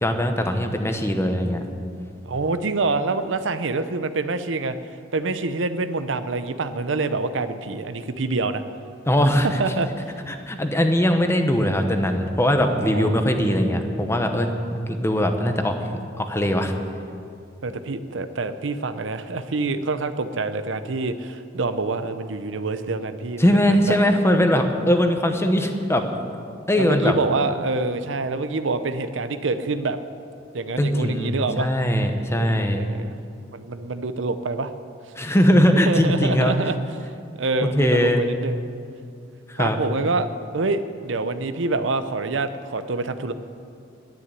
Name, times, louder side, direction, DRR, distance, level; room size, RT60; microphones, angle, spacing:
voice 1, 0.0-1.6 9.1-9.5 10.3-15.8 16.2-16.7 23.4-26.1 26.7-27.2 30.8-32.8 35.2-36.5 37.8-38.2 39.5-39.8, equal, 15° left, 6 dB, 1.0 m, -20 dB
voice 2, 2.2-4.8 5.1-8.6 9.6-9.9 12.6-13.1 17.6-23.5 23.9-24.0 26.8-30.0 30.5-31.7 32.4-33.2 33.5-34.7 35.7-36.8 37.4-38.6 39.6-40.3 40.5-43.3, right 3 dB, 75° right, 11 dB, 0.7 m, -26 dB
10.5 x 9.7 x 9.7 m, 2.4 s
head